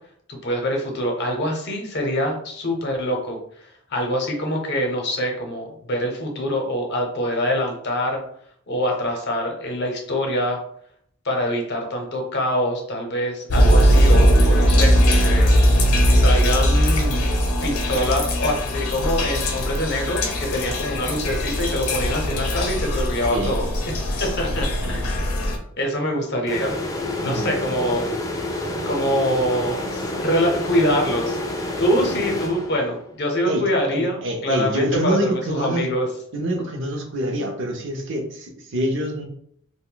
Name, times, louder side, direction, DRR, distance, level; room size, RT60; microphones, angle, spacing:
voice 1, 0.3-8.2 8.7-10.6 11.2-15.5 16.2-17.3 17.6-23.7 24.4-25.2 25.8-26.7 27.2-28.1 28.8-31.4 31.8-36.1, equal, 50° left, 2 dB, 0.7 m, -24 dB
sound 1, 13.5-25.6, equal, 85° left, 0.6 m, -19 dB
sound 2, 26.5-33.1, left 1 dB, 15° left, 0.3 m, -28 dB
voice 2, 33.9-35.9 36.3-39.3, equal, 60° right, 3 dB, 0.6 m, -25 dB
2.5 x 2.1 x 3.8 m, 0.66 s
head